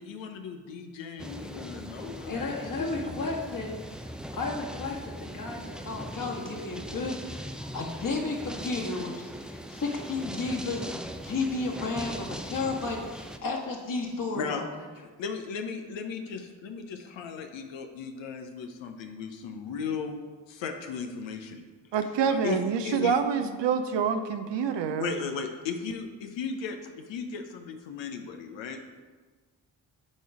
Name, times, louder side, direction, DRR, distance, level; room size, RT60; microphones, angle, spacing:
voice 1, 0.0-2.5 2.8-3.2 14.4-14.6 15.2-20.2 20.5-21.6 22.4-23.2 25.0-28.8, left 6 dB, 65° left, 5 dB, 0.9 m, -36 dB
sound 1, 1.2-13.4, equal, ahead, 0.6 m, -40 dB
voice 2, 2.3-4.0 4.3-14.6, left 3 dB, 40° left, -1 dB, 1.9 m, -33 dB
voice 3, 21.9-25.1, right 7 dB, 60° right, 8 dB, 0.8 m, -27 dB
9.1 x 3.9 x 4.9 m, 1.4 s
hypercardioid pair, 40°, 48 cm